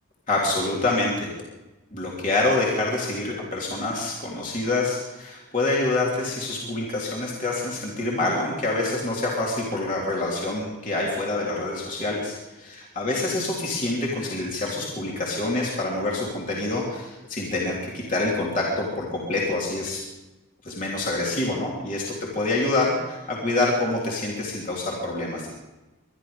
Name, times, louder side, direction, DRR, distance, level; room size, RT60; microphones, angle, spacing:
voice 1, 0.3-1.3 1.9-20.0 20.6-25.5, left 2 dB, 40° left, -3 dB, 3.3 m, -26 dB
23.0 x 11.5 x 5.2 m, 1.1 s
head